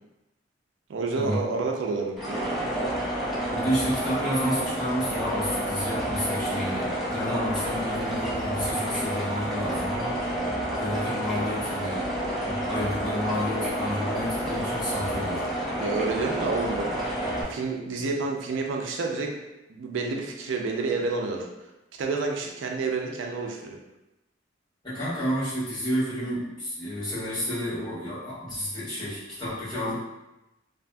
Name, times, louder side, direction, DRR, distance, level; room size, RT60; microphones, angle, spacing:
voice 1, 0.9-2.5 15.8-16.9 17.5-19.4 19.7-21.5 22.0-23.8, right 3 dB, 85° right, 1 dB, 0.4 m, -29 dB
sound 1, 2.2-17.4, right 1 dB, ahead, 0.5 m, -29 dB
voice 2, 3.5-10.2 10.8-12.1 12.4-15.4 24.8-30.0, equal, 25° left, -12 dB, 1.5 m, -30 dB
2.7 x 2.5 x 2.2 m, 0.97 s
head